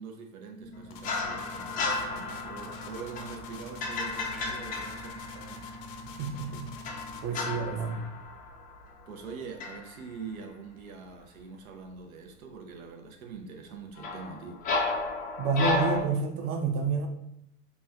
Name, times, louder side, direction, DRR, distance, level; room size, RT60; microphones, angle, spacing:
voice 1, 0.0-5.6 7.3-8.1 9.1-14.6, right 5 dB, 90° right, 3 dB, 0.6 m, -44 dB
sound 1, 0.6-7.2, equal, 70° right, 1.0 m, -46 dB
sound 2, 0.9-7.3, left 6 dB, 70° left, 0.6 m, -47 dB
sound 3, 1.0-5.9 6.8-9.3 9.6-9.9 14.0-16.0, left 3 dB, 25° left, 0.3 m, -33 dB
voice 2, 6.0-6.7 7.2-8.0 15.4-17.1, right 4 dB, 35° right, 4 dB, 0.5 m, -29 dB
4.2 x 2.2 x 2.2 m, 0.78 s
hypercardioid pair, 100°, 41 cm